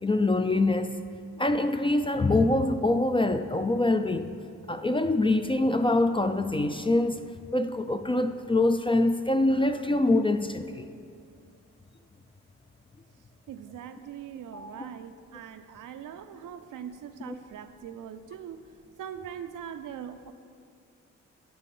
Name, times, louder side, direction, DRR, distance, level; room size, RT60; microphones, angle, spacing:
voice 1, 0.0-1.0 1.4-4.3 4.7-7.2 7.5-10.9 14.5-14.8 17.3-17.4, left 2 dB, 15° left, 8 dB, 0.3 m, -25 dB
voice 2, 13.5-18.7 19.0-20.3, right 9 dB, 70° right, 10 dB, 0.5 m, -41 dB
10.5 x 4.2 x 5.4 m, 2.5 s
cardioid pair, 60°, 33 cm